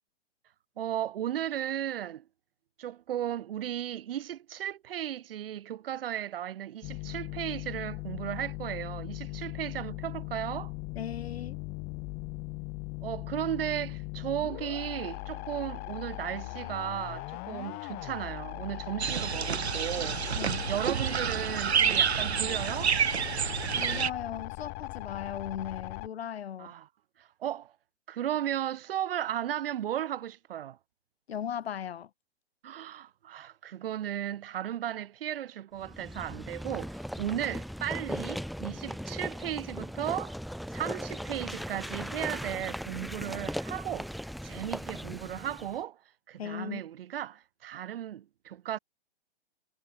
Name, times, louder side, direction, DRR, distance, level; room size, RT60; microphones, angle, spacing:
voice 1, 0.8-2.2 2.8-10.7 13.0-20.2 20.7-22.9 26.6-26.9 27.2-27.7 28.1-30.8 32.6-40.4 40.7-44.1 44.4-46.0 46.3-48.8, right 11 dB, 60° right, 3.2 m, -35 dB
sound 1, 6.8-26.1, left 26 dB, 30° left, 2.4 m, -39 dB
voice 2, 11.0-11.6 20.4-20.7 23.7-26.7 31.3-32.1 46.4-46.8, left 9 dB, 70° left, 4.1 m, -37 dB
sound 2, 19.0-24.1, right 8 dB, 80° right, 2.8 m, -28 dB
sound 3, 35.8-45.8, equal, ahead, 5.7 m, -38 dB
hypercardioid pair, 135°, 32 cm